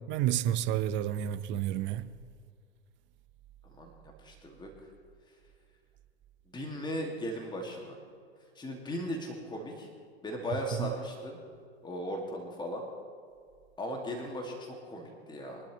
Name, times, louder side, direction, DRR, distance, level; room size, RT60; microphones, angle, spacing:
voice 1, 0.1-2.1 10.8-10.9, right 11 dB, 35° right, 0.7 m, -30 dB
voice 2, 4.2-4.7 6.5-8.0 8.6-9.9 10.2-11.4 11.8-12.9 13.8-15.6, equal, 15° left, 2.4 m, -37 dB
23.5 x 12.0 x 3.2 m
figure-of-eight pair, 90°, 34 cm